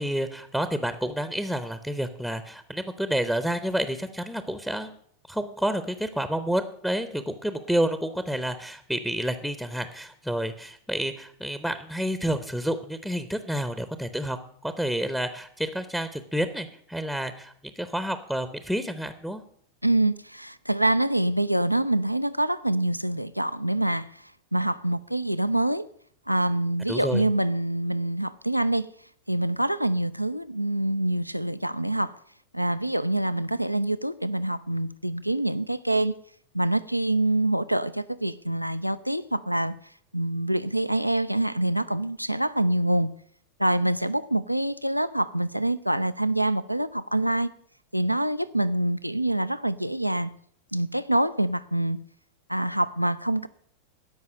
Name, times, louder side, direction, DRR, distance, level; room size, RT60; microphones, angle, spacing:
voice 1, 0.0-5.0 5.3-14.4 14.6-19.4 26.9-27.2, equal, ahead, 0.7 m, -29 dB
voice 2, 19.8-25.9 26.3-28.9 29.3-32.2 32.5-36.1 36.5-39.7 40.1-43.1 43.6-47.5 47.9-50.3 50.7-52.0 52.5-53.5, right 1 dB, 90° right, 0.4 m, -25 dB
12.5 x 5.5 x 8.9 m
figure-of-eight pair, 90°, 0 cm